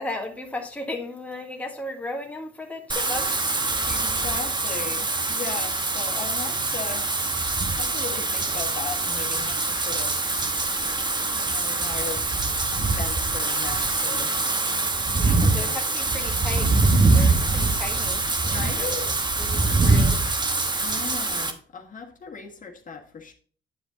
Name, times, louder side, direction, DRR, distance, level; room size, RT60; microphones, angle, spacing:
voice 1, 0.0-3.3 15.2-18.9 19.4-20.2, left 2 dB, 5° left, 1.5 m, -35 dB
Wind / Rain, 2.9-21.5, right 3 dB, 20° right, 1.0 m, -24 dB
voice 2, 3.8-7.1 7.4-7.5 7.8-10.3 11.3-12.5 12.9-14.4 15.4-15.8 18.4-19.3 20.8-23.3, left 5 dB, 40° left, 1.5 m, -37 dB
9.1 x 5.0 x 3.9 m
cardioid pair, 90°, 20 cm